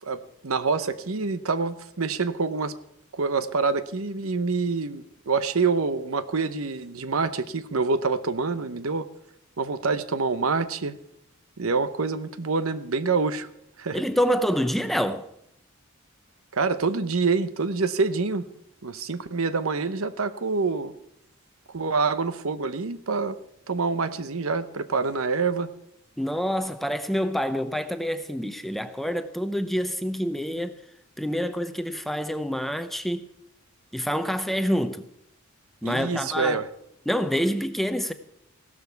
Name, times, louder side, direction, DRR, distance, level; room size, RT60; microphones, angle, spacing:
voice 1, 0.0-2.7 3.1-9.1 9.6-11.0 11.6-13.5 13.8-14.0 16.5-18.5 18.8-20.9 21.7-23.4 23.7-25.7 35.8-36.7, right 4 dB, 85° right, 0.9 m, -26 dB
voice 2, 13.9-15.3 26.2-30.8 31.2-33.3 33.9-35.1 35.8-36.6 37.1-38.1, equal, ahead, 0.7 m, -27 dB
16.0 x 12.5 x 4.6 m
head